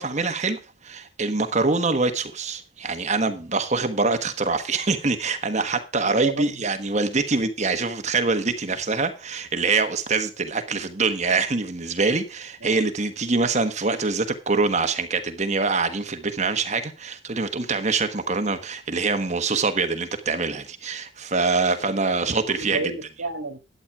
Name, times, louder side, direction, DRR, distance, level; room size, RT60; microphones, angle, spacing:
voice 1, 0.0-22.8, right 3 dB, 35° right, 1.3 m, -24 dB
voice 2, 6.0-6.6 12.6-12.8 22.2-23.6, right 3 dB, 80° right, 1.9 m, -31 dB
12.0 x 8.9 x 4.8 m
head